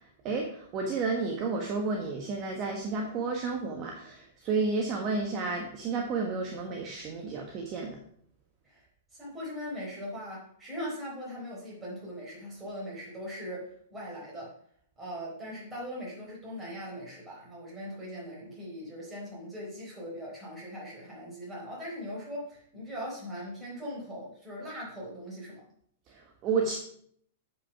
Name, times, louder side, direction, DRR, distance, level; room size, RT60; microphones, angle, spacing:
voice 1, 0.2-8.0 26.1-26.7, right 4 dB, 30° right, 1 dB, 1.3 m, -31 dB
voice 2, 9.1-14.6 15.0-25.6, equal, 10° right, -6 dB, 4.5 m, -40 dB
8.2 x 5.6 x 5.9 m, 0.64 s
supercardioid pair, 155°, 0 cm